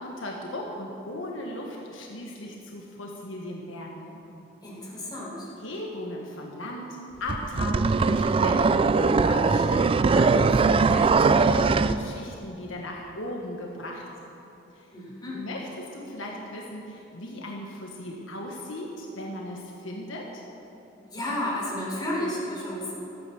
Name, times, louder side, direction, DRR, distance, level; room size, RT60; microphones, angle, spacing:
voice 1, 0.0-4.2 5.6-14.1 14.7-14.9 15.3-20.4, left 1 dB, 75° left, -1 dB, 1.4 m, -37 dB
voice 2, 4.6-5.5 14.9-15.4 21.1-22.9, left 1 dB, 20° left, -5 dB, 3.9 m, -32 dB
sound 1, 7.3-12.0, right 4 dB, 25° right, 0.3 m, -21 dB
13.5 x 9.3 x 7.0 m, 2.9 s
head